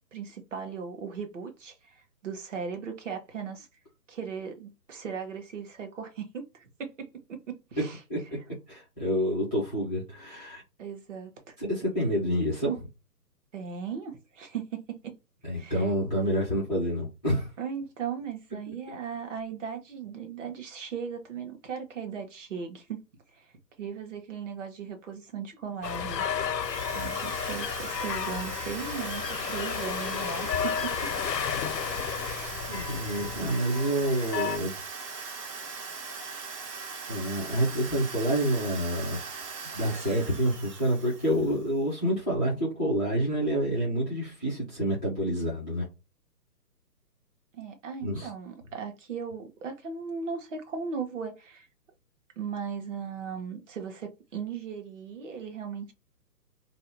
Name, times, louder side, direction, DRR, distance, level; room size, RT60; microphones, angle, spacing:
voice 1, 0.1-3.7 4.1-8.0 10.8-11.6 13.5-15.2 15.5-15.9 17.6-23.0 23.3-26.2 26.9-31.1 47.5-51.7 52.4-55.9, right 6 dB, 50° right, 1.1 m, -37 dB
voice 2, 8.7-10.6 11.6-12.9 15.4-17.5 32.7-34.7 37.1-39.2 39.7-45.9 48.0-48.3, equal, 5° right, 0.6 m, -28 dB
sound 1, 25.8-34.6, left 7 dB, 90° left, 0.7 m, -32 dB
Drill, 26.6-41.8, right 5 dB, 75° right, 1.1 m, -40 dB
2.7 x 2.2 x 4.0 m
hypercardioid pair, 150°, 48 cm